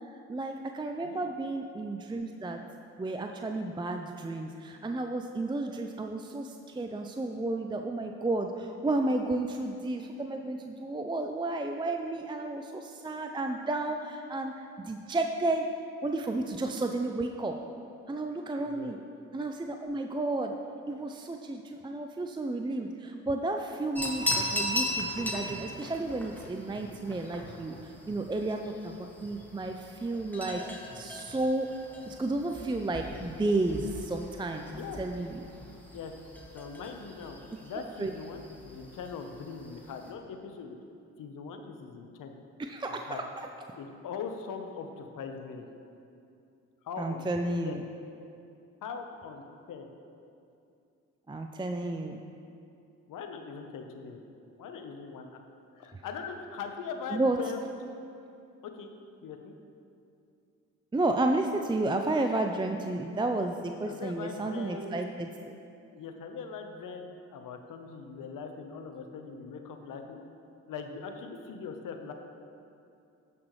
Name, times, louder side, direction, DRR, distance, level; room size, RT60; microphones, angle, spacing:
voice 1, 0.3-2.6 3.0-14.5 14.8-15.7 16.0-17.5 18.1-19.0 19.3-20.5 20.9-27.8 28.1-28.6 28.8-30.6 30.9-31.7 32.1-35.4 38.0-38.1 42.6-43.5 47.0-47.8 51.3-52.2 57.1-57.4 60.9-65.3, right 2 dB, 15° right, 4 dB, 0.5 m, -32 dB
voice 2, 18.6-18.9 28.3-28.5 34.7-35.0 35.9-36.1 36.5-40.8 41.2-42.3 42.9-43.2 43.7-45.7 46.8-47.2 47.6-47.8 48.8-49.9 53.1-54.2 54.6-55.4 55.8-57.7 58.6-58.9 59.2-59.5 63.9-64.9 65.9-70.2 70.7-72.1, left 5 dB, 65° left, 5 dB, 1.0 m, -41 dB
sound 1, 23.9-40.1, left 1 dB, 5° left, 2.0 m, -39 dB
16.0 x 6.0 x 3.2 m, 2.6 s
hypercardioid pair, 50°, 35 cm